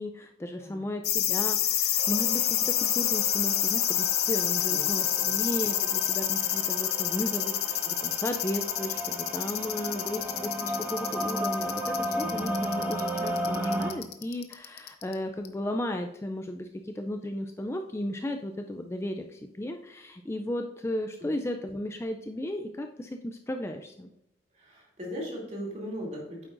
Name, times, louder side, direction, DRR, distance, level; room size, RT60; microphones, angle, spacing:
voice 1, 0.0-24.1, left 1 dB, 15° left, 5 dB, 0.3 m, -35 dB
sound 1, 1.0-15.1 15.4-15.5, left 12 dB, 55° left, 0.7 m, -28 dB
sound 2, 2.0-13.9, equal, 10° right, 1.4 m, -34 dB
voice 2, 24.5-26.5, equal, 40° right, -2 dB, 2.7 m, -38 dB
9.2 x 7.6 x 2.5 m, 0.86 s
head